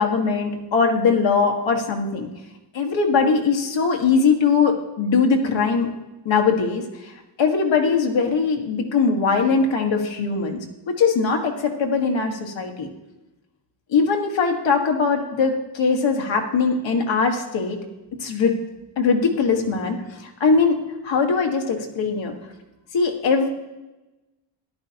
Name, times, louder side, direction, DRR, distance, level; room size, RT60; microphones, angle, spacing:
voice 1, 0.0-2.3 2.7-5.9 6.2-7.1 7.4-10.6 10.9-12.9 13.9-17.8 18.2-18.5 19.0-20.8 21.0-22.3 22.9-23.5, left 5 dB, 80° left, 2 dB, 1.6 m, -21 dB
14.0 x 11.0 x 2.9 m, 1.0 s
wide cardioid pair, 155°, 44 cm